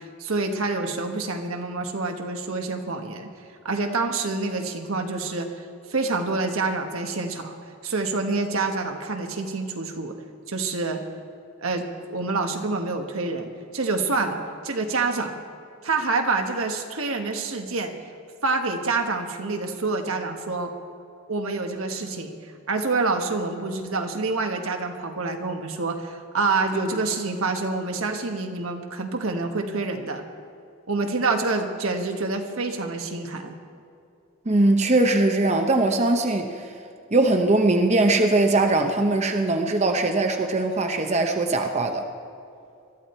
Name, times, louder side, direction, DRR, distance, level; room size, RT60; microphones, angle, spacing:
voice 1, 0.0-3.3 3.6-7.5 7.8-10.2 10.5-11.0 11.6-15.3 15.8-17.9 18.4-20.7 21.3-22.3 22.7-30.2 30.9-33.6, right 3 dB, 80° right, 4 dB, 1.4 m, -27 dB
voice 2, 34.5-36.6 37.1-42.0, right 2 dB, 30° right, 5 dB, 0.8 m, -21 dB
21.0 x 13.0 x 4.5 m, 2.5 s
head